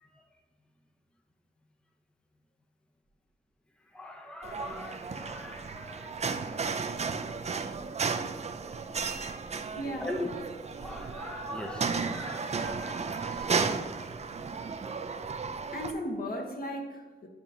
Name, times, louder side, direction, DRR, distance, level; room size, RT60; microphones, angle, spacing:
voice 1, 3.9-6.5 6.8-7.2 10.0-10.3 10.8-14.1, left 1 dB, 5° left, 2 dB, 0.6 m, -42 dB
sound 1, 4.4-15.9, right 5 dB, 35° right, 0.4 m, -34 dB
voice 2, 9.7-10.2 15.7-17.3, equal, 55° left, 0 dB, 1.4 m, -36 dB
8.9 x 5.0 x 2.8 m, 1.4 s
wide cardioid pair, 90°, 18 cm